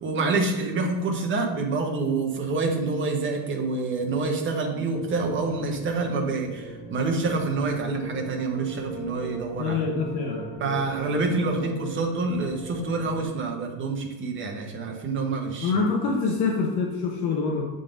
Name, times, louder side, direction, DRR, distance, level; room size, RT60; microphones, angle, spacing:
voice 1, 0.0-9.8 10.6-15.8, right 3 dB, 25° right, 2 dB, 0.9 m, -27 dB
sound 1, 4.9-13.2, right 1 dB, 80° left, 1.6 m, -38 dB
voice 2, 9.6-10.9 15.6-17.6, left 4 dB, 50° left, 0 dB, 1.0 m, -26 dB
7.3 x 3.9 x 5.1 m, 1.2 s
cardioid pair, 165°, 48 cm